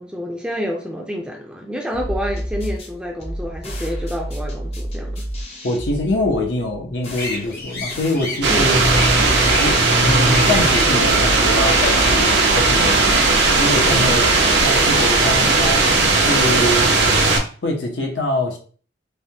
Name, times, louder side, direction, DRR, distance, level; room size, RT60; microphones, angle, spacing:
voice 1, 0.0-5.3 8.5-8.8 13.7-14.1, equal, 5° right, 0.4 m, -28 dB
sound 1, 1.9-15.5, equal, 35° left, 0.6 m, -31 dB
voice 2, 5.6-8.9 9.6-13.3 13.6-16.9 17.6-18.6, left 1 dB, 85° left, 0.7 m, -24 dB
sound 2, 7.2-12.1, left 3 dB, 60° left, 1.0 m, -32 dB
sound 3, 8.4-17.4, right 3 dB, 80° right, 0.6 m, -16 dB
3.2 x 2.1 x 2.7 m
head